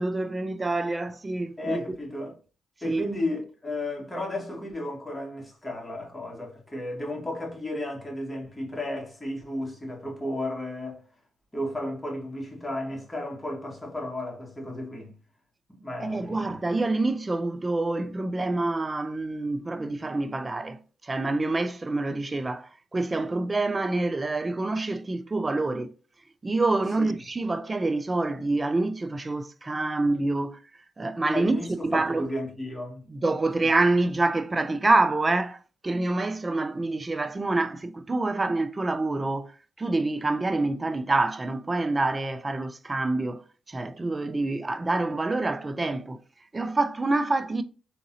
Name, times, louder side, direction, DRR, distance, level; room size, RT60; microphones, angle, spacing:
voice 1, 0.0-1.8 2.8-3.0 16.0-25.9 26.4-30.6 31.0-31.6 31.9-32.3 33.1-35.6 35.8-39.5 39.8-43.4 43.7-46.2 46.5-47.6, right 2 dB, 25° right, 0.3 m, -26 dB
voice 2, 1.6-2.3 2.8-11.0 11.5-15.1 15.7-16.6 27.0-27.1 31.3-33.0 33.6-33.7, left 1 dB, 15° left, 1.5 m, -33 dB
3.7 x 2.9 x 2.6 m
cardioid pair, 70°, 0 cm